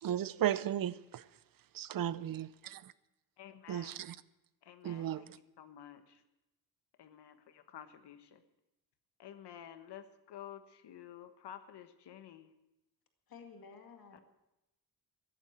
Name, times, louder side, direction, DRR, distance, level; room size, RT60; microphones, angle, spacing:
voice 1, 0.0-1.2 1.7-2.8 3.7-4.2 4.8-5.2, right 11 dB, 60° right, 0.6 m, -35 dB
voice 2, 3.4-4.0 4.6-5.3 5.6-6.2 7.0-8.4 9.2-12.5 14.1-14.2, left 10 dB, 85° left, 1.3 m, -51 dB
voice 3, 13.3-14.2, left 5 dB, 60° left, 2.1 m, -52 dB
14.5 x 11.0 x 7.5 m
wide cardioid pair, 150°, 40 cm